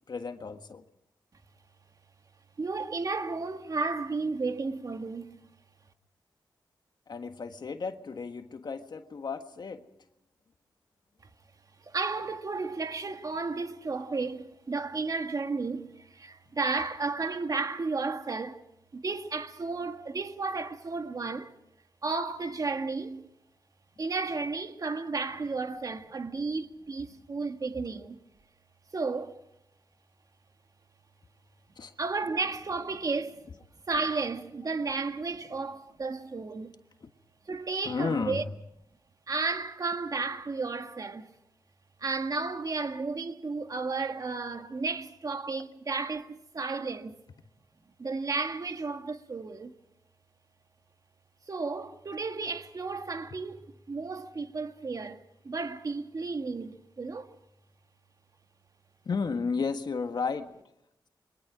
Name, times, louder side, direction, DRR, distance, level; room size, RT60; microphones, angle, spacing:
voice 1, 0.1-0.8 7.1-9.8 31.8-31.9 37.0-37.1 37.8-38.4 59.0-60.5, left 5 dB, 60° left, 1.5 m, -33 dB
voice 2, 2.6-5.4 11.8-18.7 18.9-21.5 22.0-23.3 24.0-28.2 28.9-29.4 32.0-33.5 33.9-36.7 37.5-38.4 39.3-41.3 42.0-47.2 48.0-49.7 51.5-57.4, right 4 dB, 45° right, 1.6 m, -33 dB
28.5 x 23.0 x 4.9 m
cardioid pair, 80°, 8 cm